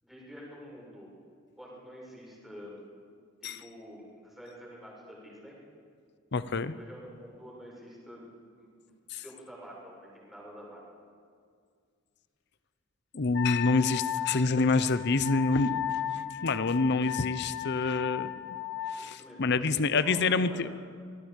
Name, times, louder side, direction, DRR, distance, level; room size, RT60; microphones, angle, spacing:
voice 1, 0.0-1.1 1.6-2.8 3.4-5.6 6.7-8.2 8.6-8.7 9.1-10.9 19.2-20.7, equal, ahead, -5 dB, 7.0 m, -47 dB
voice 2, 6.3-6.7 9.1-9.2 13.1-15.8 16.4-18.6 18.9-20.7, left 3 dB, 55° left, 14 dB, 0.8 m, -27 dB
Wind instrument woodwind instrument, 13.3-19.0, left 12 dB, 80° left, 3.2 m, -35 dB
25.5 x 19.5 x 5.4 m, 2.1 s
head